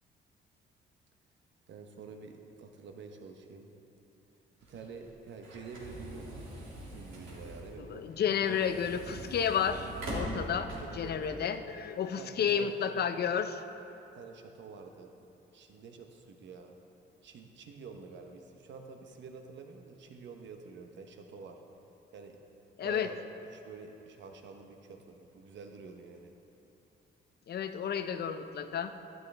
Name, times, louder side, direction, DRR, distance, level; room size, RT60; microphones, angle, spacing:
voice 1, 1.7-3.7 4.7-6.3 6.9-8.7 10.5-11.5 12.1-12.8 14.1-15.2 15.5-16.7 17.2-21.6 22.1-22.4 22.8-23.2 23.5-26.3, right 4 dB, 65° right, 4 dB, 1.0 m, -48 dB
sound 1, 4.6-11.2, equal, 85° right, 2.6 m, -42 dB
voice 2, 7.8-13.6 22.8-23.1 27.5-28.9, left 8 dB, 55° left, 9 dB, 0.6 m, -31 dB
12.5 x 9.6 x 3.4 m, 2.9 s
cardioid pair, 90°, 20 cm